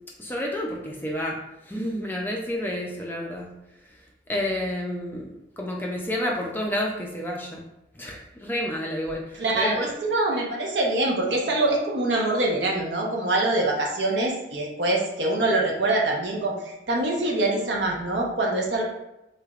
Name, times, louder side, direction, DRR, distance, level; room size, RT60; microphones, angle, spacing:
voice 1, 0.2-1.4 1.7-3.5 4.3-5.3 5.6-7.6 8.0-9.9, left 1 dB, 10° left, -1 dB, 0.4 m, -30 dB
voice 2, 9.3-18.8, right 2 dB, 75° right, 0 dB, 0.7 m, -24 dB
3.8 x 3.3 x 2.3 m, 0.91 s
head